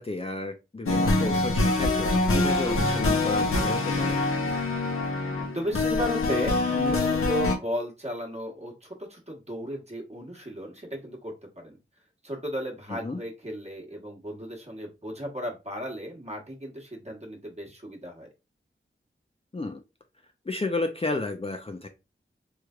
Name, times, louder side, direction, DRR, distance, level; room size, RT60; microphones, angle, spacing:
voice 1, 0.0-4.2 13.0-13.2 19.5-19.8 20.5-21.9, left 3 dB, 25° left, 4 dB, 0.5 m, -32 dB
sound 1, 0.9-7.6, left 2 dB, 85° left, 0.7 m, -25 dB
voice 2, 5.5-11.8 12.2-18.3, equal, 30° right, 0 dB, 1.2 m, -35 dB
3.2 x 3.2 x 2.4 m, 0.26 s
wide cardioid pair, 50°, 21 cm